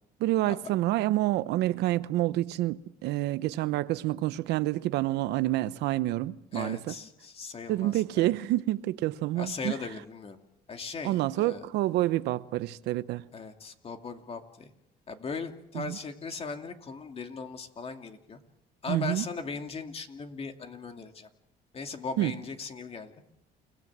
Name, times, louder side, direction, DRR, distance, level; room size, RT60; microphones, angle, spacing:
voice 1, 0.2-6.9 7.7-9.8 11.0-13.2 15.7-16.0 18.9-19.3 22.2-22.3, right 16 dB, 85° right, 0.9 m, -28 dB
voice 2, 6.5-8.3 9.4-10.4 10.7-11.6 13.3-14.7 15.1-18.4 18.8-21.3 21.7-23.1, left 4 dB, 35° left, 2.6 m, -38 dB
29.0 x 18.0 x 7.4 m
cardioid pair, 110°, 17 cm